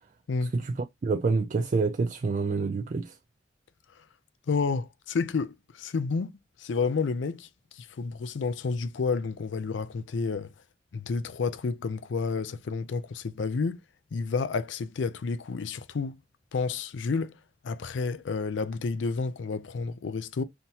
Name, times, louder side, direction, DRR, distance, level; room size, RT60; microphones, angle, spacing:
voice 1, 1.0-3.1, right 4 dB, 40° right, 0.3 m, -27 dB
voice 2, 4.5-7.5 7.7-10.5 10.9-13.8 14.1-16.2 16.5-17.4 17.6-20.4, left 4 dB, 85° left, 0.4 m, -30 dB
5.7 x 2.8 x 2.7 m
head